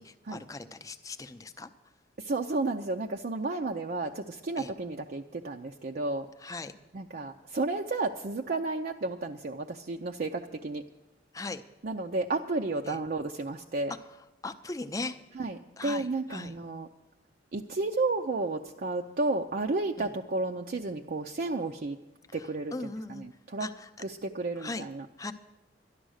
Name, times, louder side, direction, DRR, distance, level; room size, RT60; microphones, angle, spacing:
voice 1, 0.0-1.7 4.6-4.7 6.4-6.7 11.3-11.6 12.8-13.0 14.1-15.2 15.8-16.6 20.0-20.1 22.3-23.2 23.6-23.9 24.6-24.9 25.2-25.3, left 3 dB, 20° left, 8 dB, 0.6 m, -39 dB
voice 2, 2.2-6.3 6.9-10.8 11.8-13.9 15.4-16.9 17.5-22.0 22.3-22.7 23.2-23.7 24.0-25.1, right 3 dB, 50° right, 2 dB, 0.5 m, -32 dB
12.5 x 11.5 x 6.4 m, 1.0 s
head